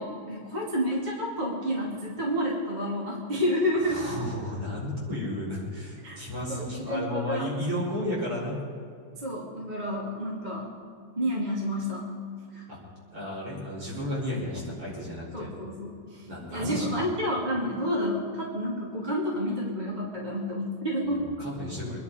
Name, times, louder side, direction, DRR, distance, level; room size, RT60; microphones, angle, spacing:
voice 1, 0.0-4.0 6.0-6.2 6.5-7.5 9.2-10.7 11.2-12.1 12.5-12.6 15.3-16.2 16.5-21.2, equal, 15° right, -4 dB, 2.1 m, -30 dB
voice 2, 3.7-8.6 12.7-12.8 13.1-15.5 16.3-16.9 21.2-22.0, left 1 dB, 45° right, -6 dB, 6.3 m, -33 dB
25.5 x 11.0 x 5.0 m, 2.3 s
omnidirectional pair, 3.6 m